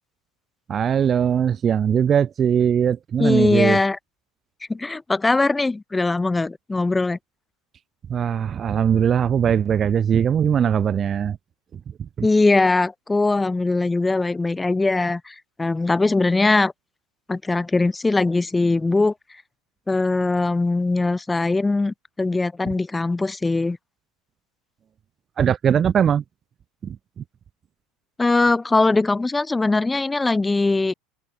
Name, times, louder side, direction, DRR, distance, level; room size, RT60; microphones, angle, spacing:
voice 1, 0.7-3.8 8.1-11.4 12.0-12.3 25.4-26.2 26.8-27.2, right 8 dB, 35° right, 0.9 m, -20 dB
voice 2, 3.2-4.0 4.7-7.2 12.2-16.7 17.3-19.1 19.9-23.8 28.2-30.9, left 3 dB, 15° left, 1.5 m, -21 dB
hypercardioid pair, 90°, 0 cm